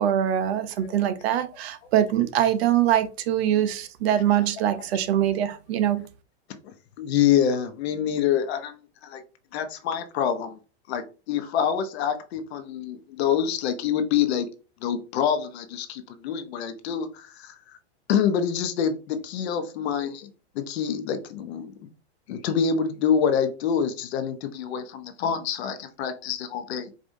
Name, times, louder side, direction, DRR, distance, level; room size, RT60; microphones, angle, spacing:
voice 1, 0.0-6.1, right 11 dB, 65° right, 0.7 m, -23 dB
voice 2, 6.6-8.8 9.0-9.2 9.5-10.6 10.9-14.5 14.8-17.5 18.1-20.3 20.5-21.7 22.3-26.9, left 8 dB, 70° left, 0.9 m, -26 dB
5.0 x 2.6 x 2.6 m
hypercardioid pair, 130°, 33 cm